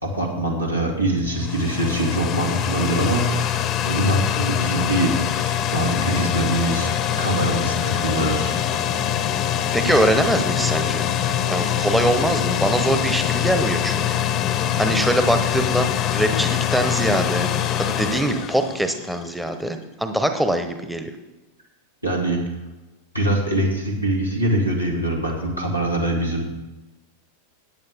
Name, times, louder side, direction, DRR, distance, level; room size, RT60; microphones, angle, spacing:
voice 1, 0.0-3.6 3.8-6.9 7.2-8.6 9.9-10.0 22.0-22.4 23.1-26.5, right 1 dB, 90° right, -2 dB, 2.5 m, -23 dB
sound 1, 1.1-19.3, left 10 dB, 35° left, 0.8 m, -24 dB
voice 2, 9.7-11.1 11.5-14.2 14.8-17.5 17.8-21.1, right 1 dB, 5° right, 7 dB, 0.9 m, -23 dB
14.5 x 9.4 x 3.6 m, 1.1 s
figure-of-eight pair, 90°, 0 cm